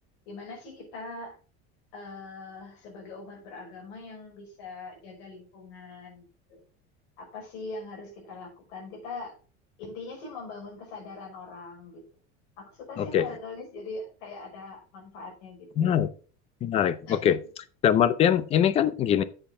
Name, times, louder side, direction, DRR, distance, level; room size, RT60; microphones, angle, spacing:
voice 1, 0.3-1.4 1.9-6.2 6.5-6.6 7.2-9.4 9.8-12.0 12.6-16.0 17.1-17.3, left 3 dB, 75° left, 1 dB, 5.3 m, -42 dB
voice 2, 15.8-16.1 16.6-17.4 17.8-19.2, left 9 dB, 20° left, 16 dB, 0.4 m, -22 dB
8.3 x 7.9 x 3.8 m, 0.38 s
cardioid pair, 180°, 32 cm